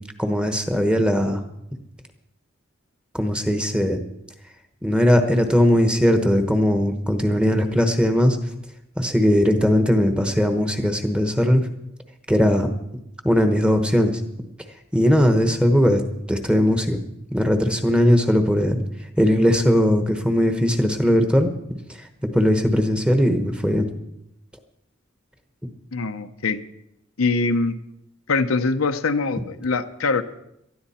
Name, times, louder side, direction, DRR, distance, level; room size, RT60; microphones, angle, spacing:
voice 1, 0.2-1.4 3.1-4.0 4.8-8.4 9.0-11.6 12.3-12.7 13.2-14.1 14.9-16.0 16.3-17.0 17.3-18.8 19.2-21.5 22.3-23.9, equal, 5° right, 6 dB, 1.1 m, -19 dB
voice 2, 25.9-26.6 27.2-27.8 28.3-30.2, left 3 dB, 80° left, 8 dB, 0.8 m, -23 dB
18.5 x 13.0 x 4.3 m, 0.83 s
head